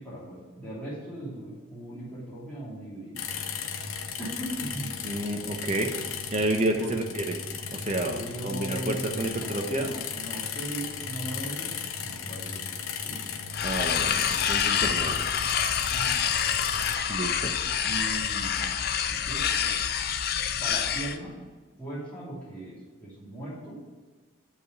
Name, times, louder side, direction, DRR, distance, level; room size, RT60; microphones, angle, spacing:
voice 1, 0.0-3.2 4.2-5.0 6.7-7.0 8.0-12.6 13.0-13.2 14.7-15.2 15.9-16.2 16.5-16.6 17.8-18.8 19.1-19.8 20.6-21.3 21.8-23.8, right 1 dB, 5° left, -10 dB, 3.0 m, -38 dB
sound 1, 3.2-17.0, left 6 dB, 85° left, 0.7 m, -36 dB
voice 2, 5.0-5.9 6.3-7.3 7.7-8.2 8.4-9.9 13.6-15.2 17.1-17.5, right 1 dB, 30° right, 3 dB, 0.8 m, -30 dB
sound 2, 13.5-21.2, left 8 dB, 45° left, 0.4 m, -27 dB
7.7 x 5.0 x 6.8 m, 1.4 s
head